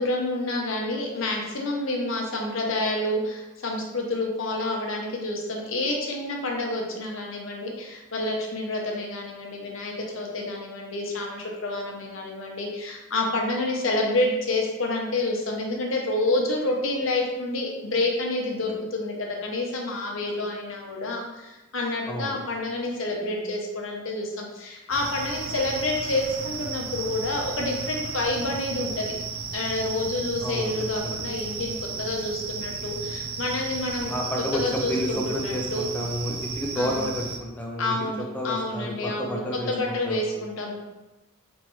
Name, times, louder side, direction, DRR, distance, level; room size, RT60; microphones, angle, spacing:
voice 1, 0.0-29.1 29.5-35.9 36.8-37.1 37.8-40.8, left 2 dB, 65° left, 0 dB, 0.8 m, -28 dB
voice 2, 22.1-22.4 30.4-30.7 31.0-31.2 34.1-38.1 38.3-40.4, equal, 10° left, -2 dB, 0.4 m, -30 dB
sound 1, 24.9-37.4, right 5 dB, 80° right, 0.4 m, -34 dB
4.3 x 3.1 x 3.1 m, 1.1 s
head